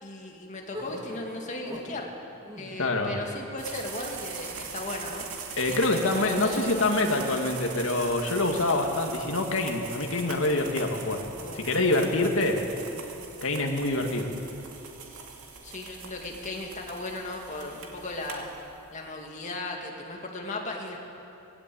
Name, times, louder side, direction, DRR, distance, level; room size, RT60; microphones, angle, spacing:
voice 1, 0.0-2.1 2.6-5.3 5.7-7.0 11.4-11.7 15.6-18.5 18.9-21.0, left 2 dB, 35° left, 1 dB, 2.2 m, -37 dB
sound 1, 0.7-2.1 2.4-2.9, left 1 dB, 20° right, 2.6 m, -40 dB
voice 2, 2.8-3.2 5.6-11.2 11.5-12.6 13.4-14.3, left 2 dB, 65° left, 2 dB, 2.2 m, -26 dB
sound 2, 3.6-19.0, right 5 dB, 75° right, 2.4 m, -41 dB
18.5 x 16.5 x 8.7 m, 2.8 s
head